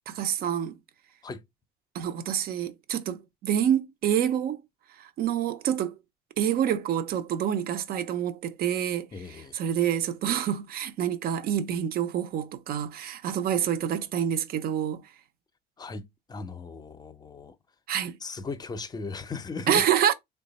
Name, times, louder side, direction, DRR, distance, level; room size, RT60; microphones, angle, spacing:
voice 1, 0.1-0.8 1.9-4.6 5.0-6.0 6.4-15.0 17.9-18.2 19.7-20.1, right 9 dB, 65° right, 0.6 m, -27 dB
voice 2, 9.1-9.5 15.8-17.6 18.2-19.9, left 4 dB, 25° left, 0.5 m, -37 dB
3.1 x 2.2 x 4.0 m
cardioid pair, 110°, 17 cm